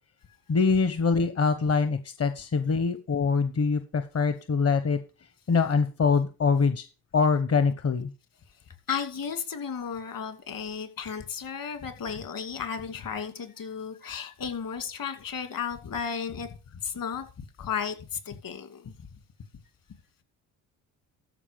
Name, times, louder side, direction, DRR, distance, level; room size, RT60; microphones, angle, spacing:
voice 1, 0.5-5.0 5.5-6.8 7.1-8.1, left 5 dB, 35° left, 1.1 m, -24 dB
voice 2, 8.9-16.5 16.8-18.9, left 7 dB, 50° left, 2.4 m, -34 dB
13.5 x 4.9 x 5.2 m
supercardioid pair, 65°, 42 cm